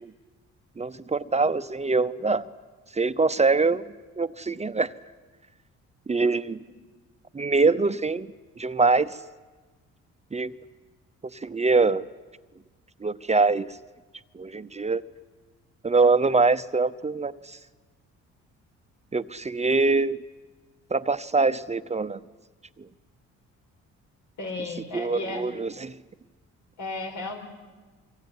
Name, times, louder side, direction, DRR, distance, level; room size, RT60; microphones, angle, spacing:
voice 1, 0.8-2.4 2.9-3.8 4.2-4.9 6.1-6.6 7.3-8.3 8.6-9.2 10.3-10.5 11.4-12.1 13.0-13.7 14.3-15.0 15.8-17.6 19.1-20.2 20.9-22.2 24.9-25.9, right 3 dB, 20° right, 0.8 m, -23 dB
voice 2, 24.4-25.5 26.8-27.4, left 3 dB, 75° left, 5.9 m, -34 dB
25.5 x 23.5 x 9.6 m
cardioid pair, 90°, 30 cm